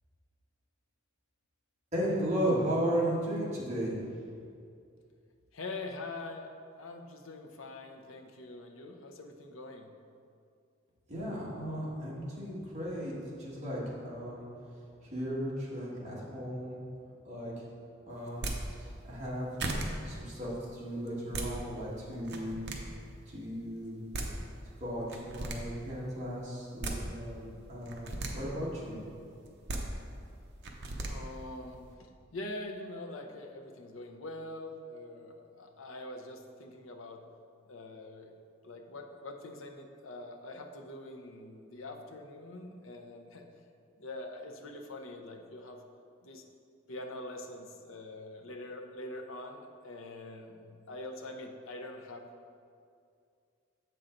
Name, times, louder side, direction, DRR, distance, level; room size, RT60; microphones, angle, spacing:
voice 1, 1.9-4.0 11.1-13.1 13.4-14.4 15.0-16.8 17.3-17.5 18.1-18.5 19.0-19.5 20.1-22.6 23.3-24.0 24.8-29.0, equal, 35° right, -6 dB, 1.8 m, -35 dB
voice 2, 5.5-6.5 6.8-9.9 31.0-37.2 37.7-38.3 38.6-43.5 44.0-45.8 46.2-46.4 46.9-52.2, left 2 dB, 85° left, 3 dB, 0.7 m, -44 dB
sound 1, 18.3-18.6 19.2-19.3 19.6-19.9 21.1-21.5 22.2-22.8 23.8-23.9 24.1-24.3 25.1-25.6 26.6-27.0 27.8-28.3 29.4-29.8 30.6-31.1, right 2 dB, 60° right, 0.8 m, -35 dB
7.6 x 5.6 x 3.9 m, 2.4 s
head